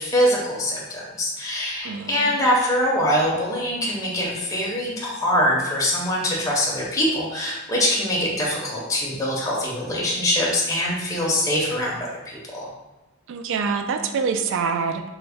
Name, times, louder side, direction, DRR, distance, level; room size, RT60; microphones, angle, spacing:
voice 1, 0.0-12.7, equal, 15° left, -5 dB, 0.5 m, -23 dB
voice 2, 1.8-2.4 13.3-15.0, right 5 dB, 65° right, 7 dB, 0.3 m, -25 dB
3.4 x 2.1 x 3.3 m, 1.0 s
head